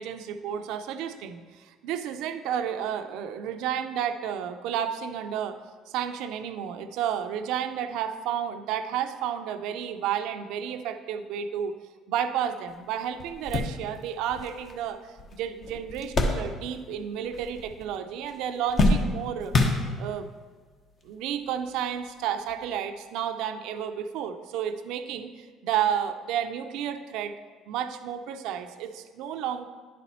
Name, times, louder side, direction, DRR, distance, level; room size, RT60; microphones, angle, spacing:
voice 1, 0.0-5.6 5.9-11.7 12.1-15.0 15.3-19.5 20.0-20.3 21.0-27.4 27.7-29.7, right 9 dB, 80° right, 8 dB, 0.5 m, -31 dB
sound 1, 12.7-12.8 13.2-17.0 17.2-18.0 18.3-20.3 21.1-21.2 22.5-22.6, left 2 dB, 40° left, 1.0 m, -27 dB
10.5 x 4.2 x 4.2 m, 1.5 s
cardioid pair, 100°, 0 cm